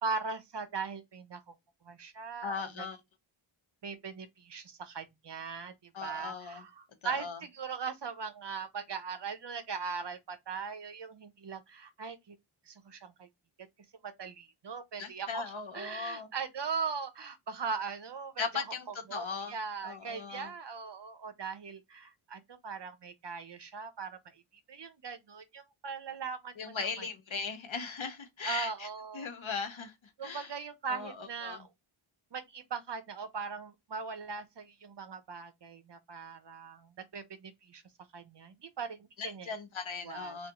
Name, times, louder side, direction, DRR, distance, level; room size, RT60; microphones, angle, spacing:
voice 1, 0.0-1.5 1.8-2.9 3.8-12.4 12.7-13.3 14.0-15.4 15.7-24.4 24.7-27.1 28.4-29.3 30.2-31.7 32.3-37.8 38.1-39.5 40.0-40.4, right 5 dB, 55° right, 0.7 m, -40 dB
voice 2, 2.4-3.0 5.9-6.6 7.0-7.4 15.0-16.3 18.4-19.5 19.8-20.5 26.6-28.9 29.1-29.9 30.2-30.5 30.9-31.7 39.2-40.5, left 5 dB, 70° left, 0.8 m, -38 dB
3.4 x 2.4 x 2.8 m
wide cardioid pair, 65°, 50 cm